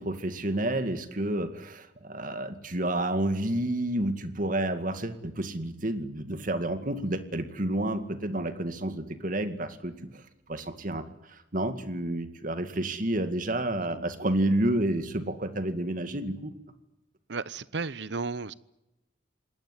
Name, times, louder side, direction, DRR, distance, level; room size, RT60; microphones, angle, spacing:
voice 1, 0.0-10.2 10.5-11.0 11.3-16.5, right 1 dB, 45° right, 9 dB, 2.1 m, -30 dB
voice 2, 17.3-18.5, right 4 dB, 65° right, 18 dB, 0.8 m, -34 dB
27.0 x 19.5 x 9.9 m, 0.96 s
head